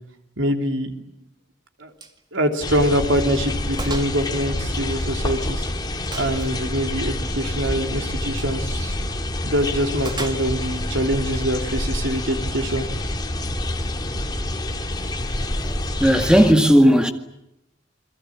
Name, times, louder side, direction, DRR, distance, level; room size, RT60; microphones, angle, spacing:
voice 1, 0.4-0.9 1.8-1.9 2.3-5.7 6.1-8.9 9.4-12.9, equal, 90° right, 3.4 m, -24 dB
Gunshot gunfire, 2.0-2.2 2.5-2.7 3.1-3.2 3.8-4.2 4.5-5.4 6.1-6.6 8.3-8.6 10.0-10.8, right 3 dB, 25° right, 2.3 m, -36 dB
sound 1, 2.6-16.5, left 1 dB, 20° left, 2.6 m, -27 dB
voice 2, 16.0-17.1, equal, 5° right, 2.0 m, -15 dB
29.0 x 22.5 x 8.7 m
head